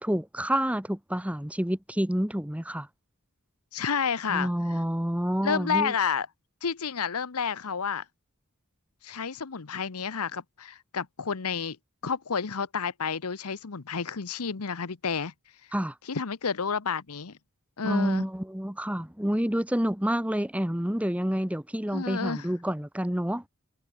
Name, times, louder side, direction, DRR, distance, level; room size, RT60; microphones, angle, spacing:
voice 1, 0.0-2.9 4.3-5.9 15.7-15.9 17.8-23.4, equal, 5° right, 1.2 m, -28 dB
voice 2, 3.7-4.5 5.4-6.3 6.6-8.0 9.0-11.8 12.0-15.3 16.0-17.4 17.8-18.2 21.9-22.5, left 6 dB, 85° left, 0.9 m, -30 dB
head